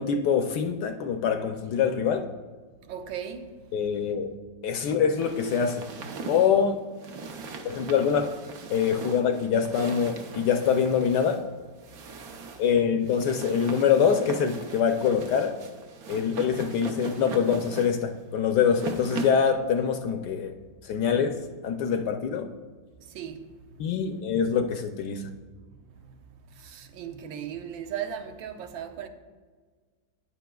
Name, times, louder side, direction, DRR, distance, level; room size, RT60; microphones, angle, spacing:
voice 1, 0.0-2.3 3.7-4.3 4.6-5.8 6.3-6.8 7.6-8.3 8.7-11.4 12.6-15.5 16.1-20.5 20.8-22.5 23.8-25.3, left 7 dB, 70° left, 1.1 m, -24 dB
voice 2, 2.9-3.4 23.1-23.4 26.6-29.1, right 9 dB, 90° right, 1.5 m, -36 dB
sound 1, 5.2-19.5, right 4 dB, 60° right, 1.1 m, -39 dB
12.5 x 9.7 x 2.3 m
omnidirectional pair, 2.1 m